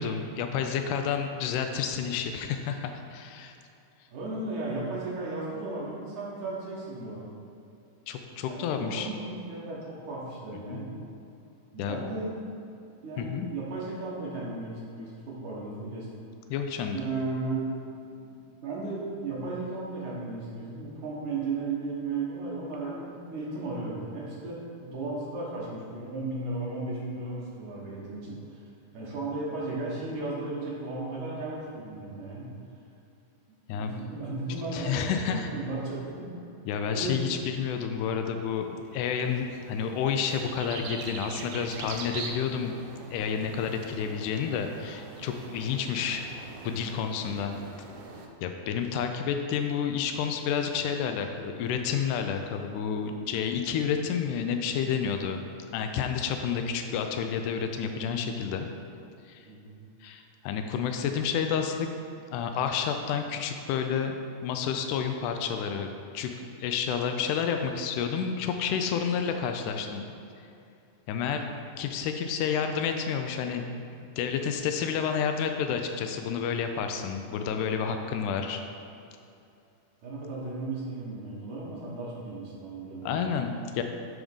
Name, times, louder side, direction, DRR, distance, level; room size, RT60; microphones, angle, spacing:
voice 1, 0.0-3.5 8.1-9.1 10.7-10.8 11.8-12.0 13.2-13.5 16.5-17.0 33.7-33.9 34.7-35.5 36.7-38.7 38.9-42.8 43.1-46.3 46.6-47.5 48.4-55.5 55.7-58.7 59.2-59.5 60.0-61.9 62.3-65.9 66.1-70.1 71.1-71.5 71.8-73.7 74.2-78.6 83.0-83.8, left 7 dB, 85° left, 5 dB, 1.8 m, -30 dB
voice 2, 4.1-7.3 8.5-10.9 11.7-12.3 13.0-16.1 16.9-17.8 18.2-18.3 18.6-28.6 28.9-32.5 33.5-36.3 36.9-37.2 59.5-59.7 80.0-83.3, right 3 dB, 60° right, -5 dB, 2.5 m, -35 dB
sound 1, 38.5-48.3, right 4 dB, 80° right, 2.2 m, -43 dB
10.5 x 3.6 x 5.4 m, 2.6 s
omnidirectional pair, 4.2 m